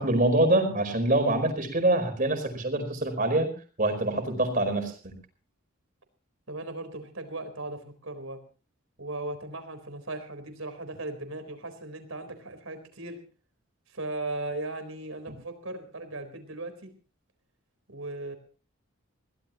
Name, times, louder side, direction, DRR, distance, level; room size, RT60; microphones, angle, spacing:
voice 1, 0.0-3.5 3.8-5.1, right 1 dB, 40° right, 6 dB, 4.7 m, -25 dB
voice 2, 6.5-8.4 9.0-13.2 13.9-16.9 17.9-18.3, right 2 dB, 80° right, 9 dB, 4.1 m, -37 dB
22.5 x 17.0 x 3.0 m, 0.36 s
head